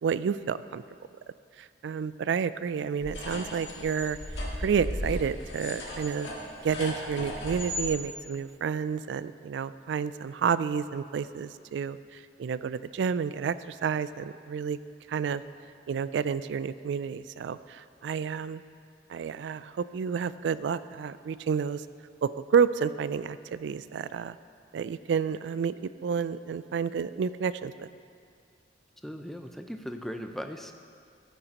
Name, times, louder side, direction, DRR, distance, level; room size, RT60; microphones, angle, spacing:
voice 1, 0.0-0.8 1.6-4.2 4.6-6.3 6.6-14.8 15.1-15.4 15.9-18.6 19.1-21.9 22.2-24.4 24.7-25.7 26.0-27.9, right 6 dB, 75° right, 15 dB, 0.3 m, -30 dB
sound 1, 3.0-7.9, left 1 dB, 85° left, 1.7 m, -36 dB
voice 2, 29.0-30.7, equal, ahead, 5 dB, 0.4 m, -38 dB
14.0 x 8.9 x 2.9 m, 2.3 s
head